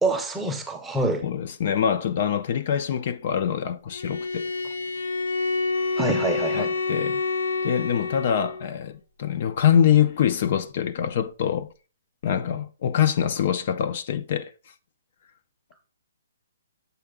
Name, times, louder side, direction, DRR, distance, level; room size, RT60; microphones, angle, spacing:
voice 1, 0.0-1.2 6.0-6.7, right 2 dB, 5° right, 0.6 m, -26 dB
voice 2, 1.2-4.5 6.5-7.2 7.6-11.7 12.2-14.5, left 9 dB, 45° left, 0.4 m, -24 dB
Bowed string instrument, 3.9-8.7, left 3 dB, 90° left, 0.9 m, -28 dB
6.9 x 4.6 x 3.6 m
hypercardioid pair, 165°, 0 cm